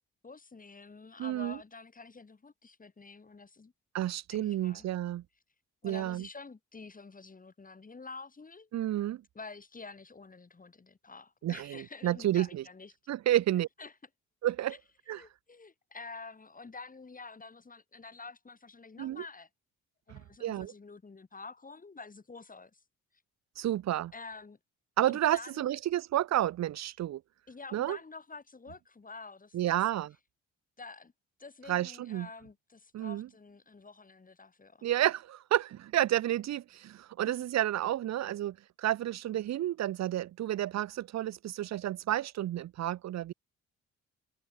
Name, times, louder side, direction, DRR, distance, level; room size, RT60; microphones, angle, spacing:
voice 1, 0.2-3.7 4.3-4.9 5.8-8.7 9.4-12.9 13.3-13.4 13.8-13.9 14.7-14.8 15.1-19.5 20.1-22.8 24.1-24.6 25.0-25.7 27.5-29.8 30.8-31.1 31.4-34.9 37.2-37.4, left 4 dB, 25° left, 5.2 m, -48 dB
voice 2, 1.2-1.6 3.9-5.2 5.8-6.3 8.7-9.2 11.4-12.6 13.1-13.7 14.4-14.7 15.1-15.2 19.0-19.2 20.1-20.7 23.6-24.1 25.0-27.2 27.7-28.0 29.5-30.1 31.7-32.3 32.9-33.3 34.8-43.3, right 13 dB, 60° right, 0.7 m, -31 dB
cardioid pair, 90°, 30 cm